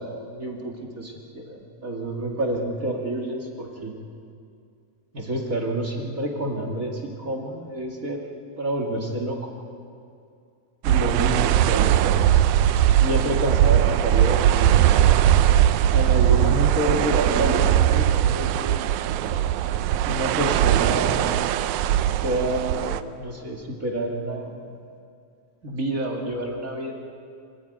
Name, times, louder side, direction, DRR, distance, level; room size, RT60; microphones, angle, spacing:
voice 1, 0.0-3.9 5.1-8.2 8.6-9.4 10.8-12.1 12.9-14.9 15.9-18.8 20.0-21.3 22.2-24.6 25.6-26.9, right 1 dB, 30° right, 0 dB, 2.1 m, -28 dB
sound 1, 10.9-23.0, right 11 dB, 85° right, 2.1 m, -20 dB
26.0 x 14.0 x 9.2 m, 2.4 s
omnidirectional pair, 3.4 m